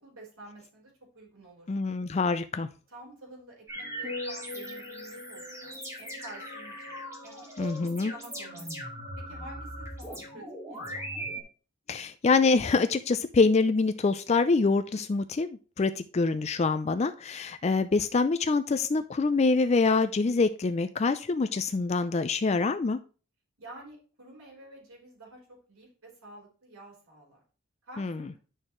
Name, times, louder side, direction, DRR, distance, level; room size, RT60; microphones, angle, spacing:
voice 1, 0.0-1.7 2.9-8.7 9.2-11.0 23.6-27.4 27.8-28.4, right 1 dB, 85° right, -3 dB, 4.4 m, -50 dB
voice 2, 1.7-2.7 7.6-8.1 11.9-23.0 28.0-28.3, left 4 dB, 30° left, 11 dB, 0.4 m, -25 dB
sound 1, 3.7-11.4, equal, 15° right, 2.2 m, -39 dB
10.5 x 6.5 x 3.1 m, 0.38 s
head